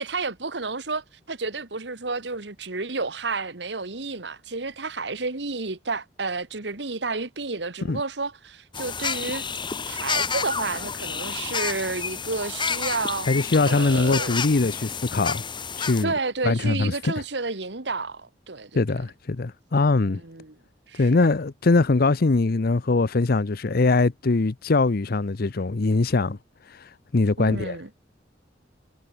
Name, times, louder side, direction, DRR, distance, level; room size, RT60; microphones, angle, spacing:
voice 1, 0.0-9.4 9.9-13.3 13.7-14.4 16.0-19.0 20.1-20.6 20.9-21.3 27.4-27.9, right 3 dB, 70° right, 1.8 m, -31 dB
sound 1, 8.7-16.0, left 5 dB, 25° left, 1.6 m, -30 dB
voice 2, 13.3-15.4 15.8-16.1 16.4-17.1 18.7-20.2 21.0-26.4 26.7-27.8, left 3 dB, 55° left, 0.7 m, -22 dB
head